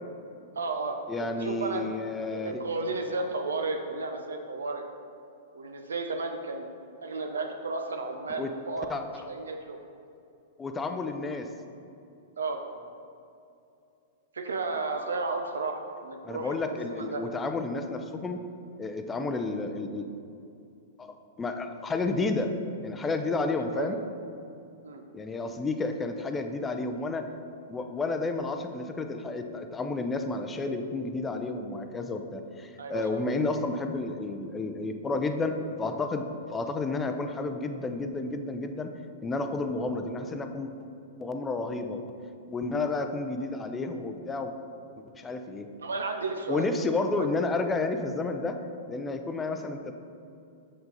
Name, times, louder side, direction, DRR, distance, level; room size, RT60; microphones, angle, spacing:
voice 1, 0.6-1.9 2.3-4.8 5.5-6.7 7.0-9.8 12.4-12.6 14.3-17.2 23.7-24.0 24.8-25.0 32.8-33.2 45.8-46.7 47.2-47.3, right 3 dB, 85° right, 4 dB, 0.5 m, -33 dB
voice 2, 1.1-2.6 8.4-8.5 8.9-9.0 10.6-11.5 16.2-18.4 18.8-20.1 21.0-22.5 22.8-24.0 25.1-27.3 27.7-36.2 36.5-38.9 39.2-40.7 41.2-42.0 42.5-44.5 45.1-45.7 46.5-48.6 48.9-49.9, left 3 dB, 15° left, 6 dB, 0.5 m, -31 dB
6.3 x 4.7 x 3.9 m, 2.6 s
hypercardioid pair, 110°, 0 cm